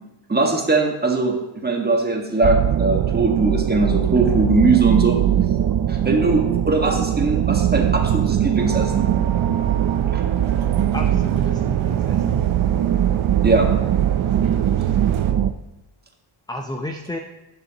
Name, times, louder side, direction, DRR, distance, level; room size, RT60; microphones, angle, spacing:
voice 1, 0.3-5.2 5.9-9.1 10.1-10.2 13.4-13.7, right 3 dB, 20° right, 2 dB, 1.5 m, -20 dB
sound 1, 2.4-15.5, right 10 dB, 45° right, 0.5 m, -20 dB
sound 2, 8.6-15.3, right 8 dB, 70° right, 0.8 m, -31 dB
voice 2, 10.6-12.5 16.5-17.2, left 1 dB, 10° left, 4 dB, 0.5 m, -32 dB
11.0 x 6.3 x 2.9 m, 1.0 s
cardioid pair, 75°, 50 cm